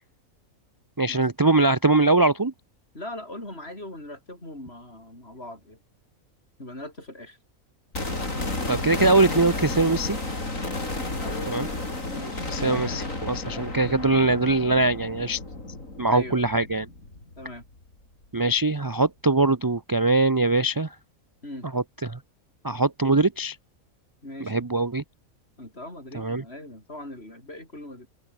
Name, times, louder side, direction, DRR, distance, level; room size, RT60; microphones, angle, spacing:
voice 1, 1.0-2.5 8.7-10.2 11.5-11.7 12.5-15.4 16.0-16.9 18.3-20.9 21.7-22.2 22.6-23.6 24.4-25.0 26.1-26.4, right 2 dB, 20° right, 0.6 m, -22 dB
voice 2, 2.9-5.8 6.6-7.4 11.2-11.8 12.1-13.0 13.4-13.6 16.1-16.4 17.4-17.7 21.4-21.7 24.2-24.7 25.6-28.1, left 1 dB, 45° left, 8.0 m, -40 dB
sound 1, 7.9-17.9 18.2-18.3, left 2 dB, 60° left, 6.0 m, -32 dB
omnidirectional pair, 1.5 m